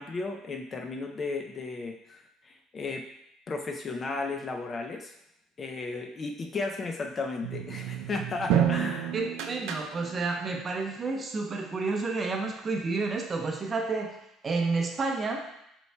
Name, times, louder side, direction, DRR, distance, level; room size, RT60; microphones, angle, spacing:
voice 1, 0.0-3.0 3.5-5.1 5.6-9.2, left 3 dB, 30° left, 4 dB, 0.4 m, -34 dB
sound 1, 7.4-10.4, right 9 dB, 80° right, 0.4 m, -30 dB
voice 2, 9.1-14.2 14.4-15.4, right 3 dB, 30° right, 2 dB, 0.7 m, -30 dB
5.3 x 4.5 x 2.2 m, 0.78 s
cardioid pair, 125°, 0 cm